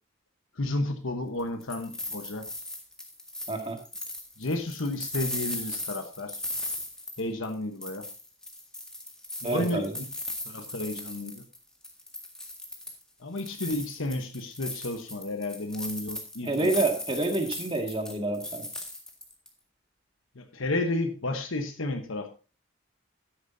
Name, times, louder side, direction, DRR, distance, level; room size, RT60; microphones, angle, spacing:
voice 1, 0.6-2.5 4.4-6.4 7.2-8.1 9.4-9.8 10.5-11.4 13.2-16.7 20.3-22.3, left 2 dB, 75° left, 5 dB, 1.1 m, -32 dB
sound 1, 1.4-7.5 7.8-11.6 11.8-13.0 13.4-19.5, left 1 dB, 5° left, 1.9 m, -38 dB
voice 2, 3.5-3.8 9.4-10.0 16.4-18.6, right 2 dB, 25° right, 4 dB, 2.0 m, -28 dB
13.0 x 10.0 x 2.7 m, 0.33 s
head